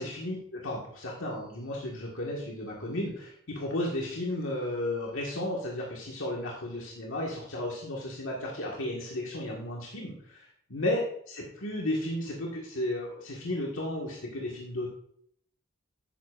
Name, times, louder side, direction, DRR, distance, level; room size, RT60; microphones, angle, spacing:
voice 1, 0.0-11.0 11.3-14.9, left 1 dB, 80° left, -3 dB, 1.8 m, -34 dB
12.0 x 9.4 x 2.5 m, 0.67 s
head